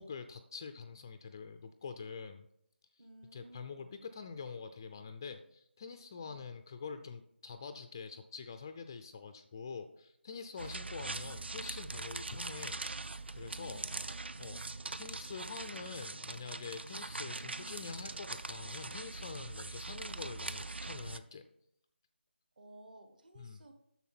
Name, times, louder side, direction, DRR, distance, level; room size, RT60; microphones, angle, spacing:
voice 1, 0.0-2.5 3.3-13.9 14.4-14.7 15.0-21.4 23.4-23.6, left 5 dB, 20° left, 9 dB, 0.3 m, -46 dB
voice 2, 3.0-4.0 6.2-6.4 10.6-10.8 13.6-14.3 22.6-23.7, right 1 dB, 45° right, 7 dB, 1.4 m, -56 dB
sound 1, 10.6-21.2, right 3 dB, 65° right, 0.6 m, -42 dB
9.8 x 6.9 x 4.3 m, 0.73 s
figure-of-eight pair, 160°, 6 cm